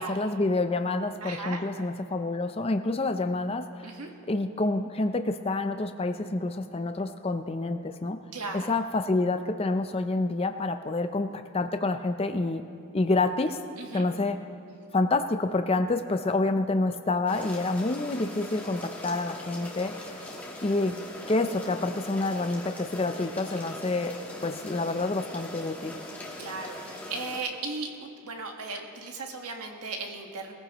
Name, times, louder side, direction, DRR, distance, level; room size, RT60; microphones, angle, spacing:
voice 1, 0.0-3.9 4.3-8.2 8.5-12.6 12.9-13.6 13.9-14.4 14.9-20.2 20.6-20.9 21.3-24.1 24.4-26.0, left 2 dB, 25° left, 8 dB, 0.5 m, -28 dB
voice 2, 1.2-1.6 3.8-4.1 8.3-8.7 13.8-14.1 26.4-30.5, right 3 dB, 90° right, 2 dB, 1.5 m, -36 dB
sound 1, 17.3-27.4, left 1 dB, 5° left, 1.5 m, -41 dB
21.5 x 15.0 x 3.0 m, 2.5 s
head